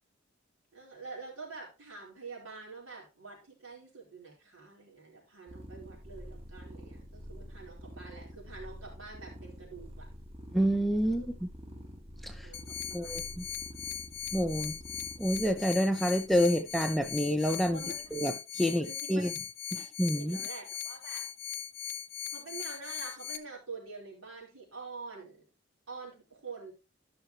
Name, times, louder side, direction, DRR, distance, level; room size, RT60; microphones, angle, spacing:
voice 1, 0.7-10.1 11.0-11.3 12.4-13.6 17.7-18.1 18.8-19.3 19.8-21.2 22.3-25.5 25.9-26.7, right 4 dB, 85° right, 4.3 m, -46 dB
sound 1, 5.5-18.1, equal, 30° right, 1.4 m, -48 dB
voice 2, 10.5-11.5 12.2-12.3 12.9-13.4 14.3-14.7 15.2-17.8 18.1-19.3 19.7-20.4, equal, ahead, 0.5 m, -28 dB
sound 2, 12.5-23.4, left 10 dB, 55° left, 0.6 m, -39 dB
13.5 x 5.8 x 3.0 m
head